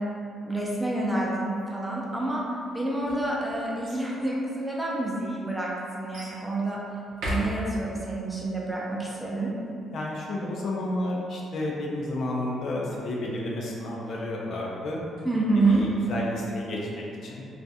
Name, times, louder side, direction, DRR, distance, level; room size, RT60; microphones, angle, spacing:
voice 1, 0.4-2.4 2.7-5.7 5.9-6.8 7.3-9.5 15.2-15.8, right 2 dB, 10° right, -5 dB, 0.5 m, -28 dB
sound 1, 2.8-4.1 4.9-5.0 6.1-6.4 7.1-8.1 15.2-16.4, equal, 80° right, 0.6 m, -37 dB
voice 2, 9.9-15.0 15.7-17.5, left 1 dB, 60° left, -3 dB, 0.4 m, -31 dB
2.4 x 2.1 x 2.7 m, 2.5 s
cardioid pair, 90°, 0 cm